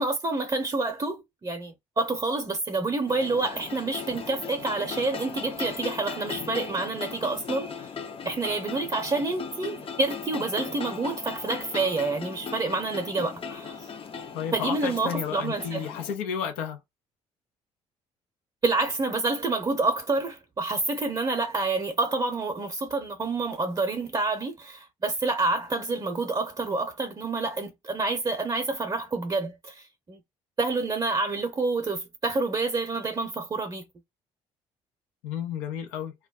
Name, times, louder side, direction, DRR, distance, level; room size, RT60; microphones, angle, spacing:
voice 1, 0.0-7.9 8.2-13.9 14.5-15.9 18.6-30.2 30.6-33.8, right 3 dB, 30° right, 0.7 m, -28 dB
sound 1, 3.1-16.1, left 6 dB, 40° left, 0.6 m, -38 dB
voice 2, 14.3-16.8 35.2-36.1, left 8 dB, 85° left, 0.7 m, -32 dB
2.3 x 2.1 x 3.5 m
hypercardioid pair, 60°, 14 cm